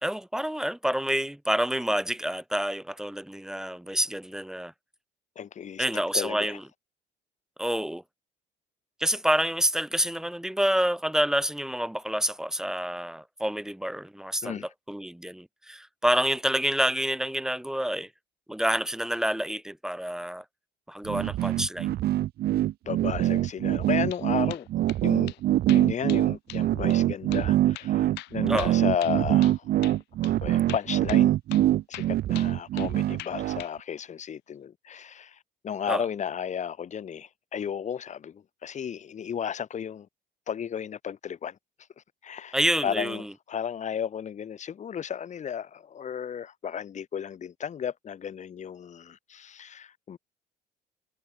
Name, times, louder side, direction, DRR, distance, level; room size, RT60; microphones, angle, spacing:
voice 1, 0.0-4.7 5.8-6.6 7.6-8.0 9.0-14.6 14.9-18.1 18.5-20.4 20.9-22.0 28.5-28.7 35.9-36.1 42.5-43.3, equal, 5° right, 2.0 m, -28 dB
voice 2, 5.4-6.6 14.4-14.7 22.9-24.7 25.0-25.4 25.7-29.7 30.4-31.3 31.9-40.1 40.5-41.6 42.2-50.2, left 8 dB, 45° left, 4.2 m, -34 dB
sound 1, 21.1-33.6, right 13 dB, 70° right, 3.2 m, -24 dB
sound 2, 23.8-24.2 24.5-25.0 25.3-25.4 25.7-26.2 26.5-26.6 26.9-27.0 27.3-27.5 27.8-29.6 29.8-30.0 30.2-30.4 30.7-31.3 31.5-31.7 31.9-32.9 33.2-33.7, left 19 dB, 85° left, 5.2 m, -42 dB
cardioid pair, 110°, 17 cm